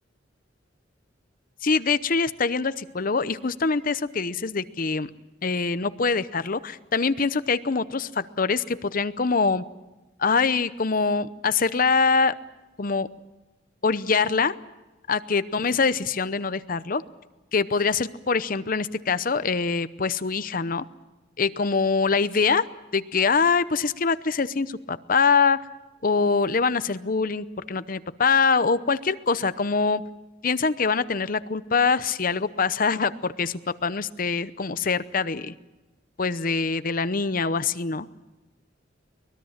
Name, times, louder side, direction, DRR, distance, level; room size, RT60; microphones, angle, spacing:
voice 1, 1.6-5.1 5.4-9.6 10.2-12.3 12.8-13.1 13.8-14.5 15.1-17.0 17.5-20.8 21.4-22.6 22.9-25.6 26.0-30.0 30.4-35.5 36.2-38.1, left 4 dB, 45° left, 14 dB, 0.8 m, -24 dB
24.0 x 20.5 x 7.3 m, 1.1 s
head